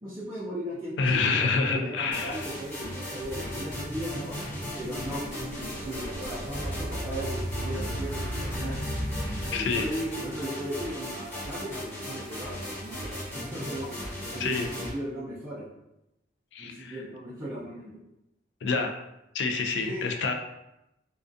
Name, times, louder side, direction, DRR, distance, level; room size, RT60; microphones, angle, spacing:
voice 1, 0.0-4.4 4.8-8.8 9.5-13.9 14.3-15.6 16.6-18.0 19.8-20.1, right 1 dB, 20° right, -9 dB, 0.4 m, -37 dB
voice 2, 1.0-2.5 9.5-9.9 14.4-14.7 16.5-17.0 18.6-18.9 19.3-20.3, left 4 dB, 65° left, 4 dB, 0.3 m, -27 dB
sound 1, 2.1-14.9, left 1 dB, 15° left, 0.8 m, -38 dB
sound 2, 2.8-10.5, equal, 85° left, 0.8 m, -36 dB
2.4 x 2.2 x 2.5 m, 0.88 s
head